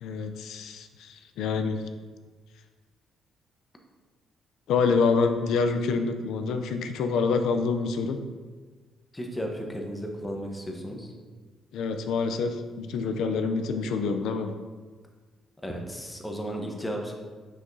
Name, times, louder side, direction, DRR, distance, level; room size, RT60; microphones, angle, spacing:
voice 1, 0.0-1.8 4.7-8.2 11.7-14.5, left 4 dB, 80° left, 7 dB, 0.5 m, -26 dB
voice 2, 9.1-11.1 15.6-17.1, equal, 10° left, 1 dB, 1.0 m, -34 dB
6.0 x 5.8 x 2.7 m, 1.4 s
cardioid pair, 90°, 0 cm